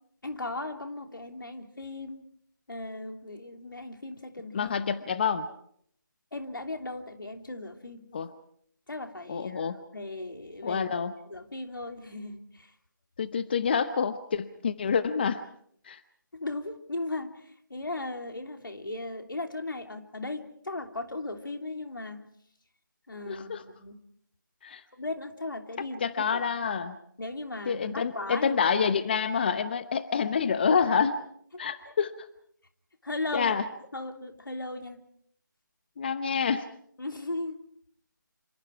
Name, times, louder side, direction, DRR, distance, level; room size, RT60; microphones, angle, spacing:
voice 1, 0.2-2.3 2.7-4.8 6.3-8.1 8.9-10.9 11.3-12.7 16.3-22.2 23.1-24.0 24.9-26.0 26.3-26.5 27.2-28.6 31.5-31.9 33.0-33.6 33.9-35.0 37.0-37.6, left 2 dB, 80° left, 5 dB, 3.2 m, -37 dB
voice 2, 4.5-5.5 8.1-8.3 9.3-9.8 10.6-11.1 13.2-15.4 15.8-16.0 23.3-23.6 24.6-24.8 26.0-27.0 27.7-31.2 31.6-32.3 33.3-33.6 36.0-36.7, left 6 dB, 30° left, 13 dB, 0.8 m, -27 dB
27.5 x 26.0 x 4.7 m, 0.67 s
figure-of-eight pair, 160°, 11 cm